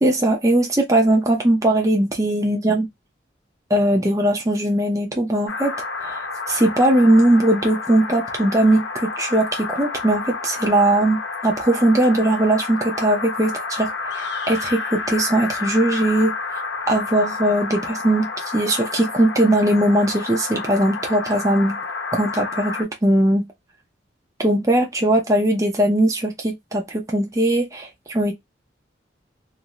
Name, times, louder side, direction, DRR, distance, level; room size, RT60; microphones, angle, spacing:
voice 1, 0.0-2.9 3.7-5.7 6.0-6.2 6.5-16.3 16.9-21.8 22.1-23.5 24.4-28.3, right 1 dB, 15° right, 0.6 m, -19 dB
sound 1, 5.5-22.8, left 4 dB, 80° left, 0.7 m, -30 dB
2.6 x 2.5 x 2.9 m
head